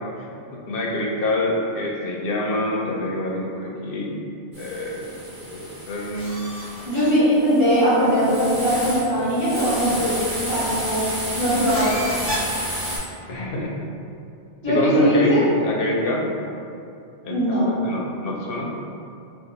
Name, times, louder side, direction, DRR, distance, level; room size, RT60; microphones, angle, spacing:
voice 1, 0.3-4.1 4.6-6.5 13.3-13.7 14.6-16.3 17.2-18.7, left 1 dB, 60° left, -1 dB, 0.7 m, -26 dB
sound 1, 4.5-13.0, equal, 80° right, 1.3 m, -31 dB
voice 2, 6.8-10.2 10.5-11.9 14.6-15.4 17.3-17.7, equal, 30° right, -14 dB, 1.3 m, -20 dB
2.9 x 2.3 x 3.8 m, 2.5 s
omnidirectional pair, 1.2 m